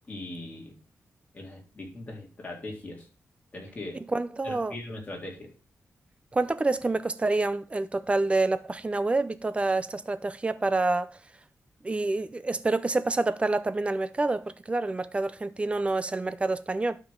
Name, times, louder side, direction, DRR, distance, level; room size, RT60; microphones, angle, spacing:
voice 1, 0.1-0.8 1.3-3.1 3.5-4.0 4.4-5.5, left 2 dB, 25° left, 3.4 m, -40 dB
voice 2, 4.1-4.7 6.3-11.1 11.8-17.0, right 2 dB, 20° right, 0.6 m, -27 dB
12.0 x 5.3 x 3.8 m
wide cardioid pair, 140°, 5 cm